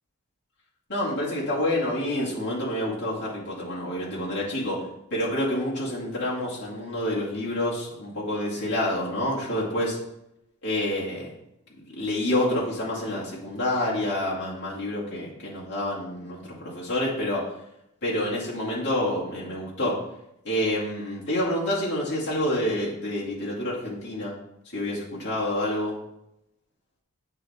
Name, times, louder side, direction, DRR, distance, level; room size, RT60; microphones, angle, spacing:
voice 1, 0.9-4.8 5.1-10.0 10.6-11.3 12.0-17.5 18.0-20.0 20.4-24.4 24.7-26.0, left 1 dB, 50° left, -6 dB, 2.1 m, -28 dB
8.7 x 3.5 x 4.2 m, 0.83 s
head